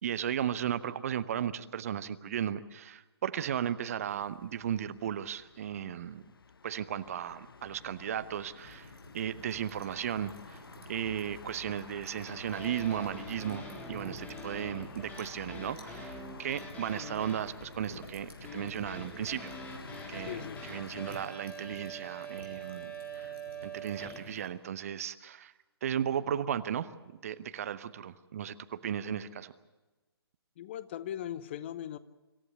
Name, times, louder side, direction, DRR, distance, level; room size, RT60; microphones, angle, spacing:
voice 1, 0.0-6.2 6.6-10.6 10.9-19.5 20.1-20.4 20.7-23.3 23.6-25.5 25.8-26.9 27.2-29.5, right 9 dB, 35° right, 0.8 m, -35 dB
sound 1, 4.1-21.3, left 5 dB, 60° left, 0.8 m, -50 dB
sound 2, 8.6-24.5, right 1 dB, 70° right, 5.7 m, -54 dB
sound 3, 12.3-24.5, right 2 dB, 10° left, 2.6 m, -45 dB
voice 2, 20.3-20.6 30.6-32.0, left 11 dB, 25° left, 0.6 m, -39 dB
26.0 x 14.5 x 8.3 m
figure-of-eight pair, 135°, 14 cm